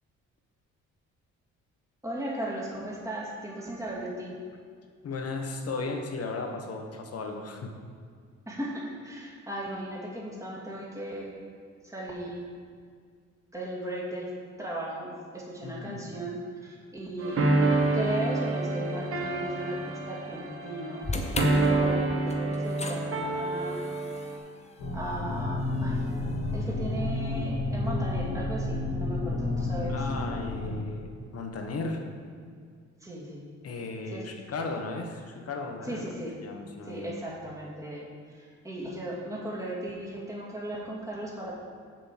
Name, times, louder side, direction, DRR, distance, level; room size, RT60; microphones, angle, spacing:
voice 1, 2.0-4.4 8.5-11.3 11.8-12.5 13.5-14.3 14.6-17.6 17.9-23.8 24.9-26.0 26.5-30.0 33.0-33.4 34.1-34.2 35.9-36.4 36.8-41.6, right 1 dB, 10° right, -4 dB, 2.2 m, -36 dB
voice 2, 5.0-7.8 15.6-16.1 29.9-32.0 33.6-36.1 36.4-37.1, left 3 dB, 50° left, 4 dB, 1.2 m, -35 dB
sound 1, 17.2-24.4, right 2 dB, 45° right, 1.5 m, -28 dB
sound 2, 21.0-27.3, left 2 dB, 20° left, 0.9 m, -38 dB
sound 3, 24.8-30.8, left 2 dB, 75° left, 2.0 m, -30 dB
7.2 x 5.3 x 7.3 m, 2.1 s
cardioid pair, 90°, 30 cm